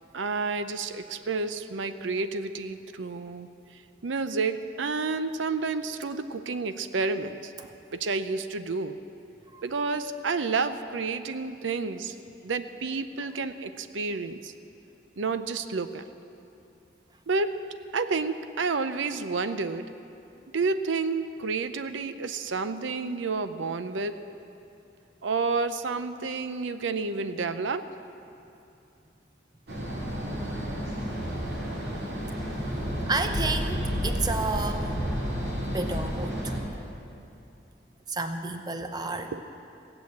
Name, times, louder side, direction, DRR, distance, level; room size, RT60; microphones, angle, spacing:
voice 1, 0.1-3.5 4.0-7.5 7.9-9.0 9.6-12.1 12.4-14.5 15.2-16.0 17.3-17.6 17.9-19.9 20.5-24.1 25.2-27.9 39.3-39.4, right 4 dB, 85° right, 11 dB, 0.6 m, -30 dB
sound 1, 29.7-36.6, equal, 65° right, 2.4 m, -31 dB
voice 2, 32.5-34.9 35.6-36.5 38.1-39.3, right 3 dB, 20° right, 7 dB, 0.6 m, -31 dB
16.5 x 7.8 x 8.4 m, 2.7 s
head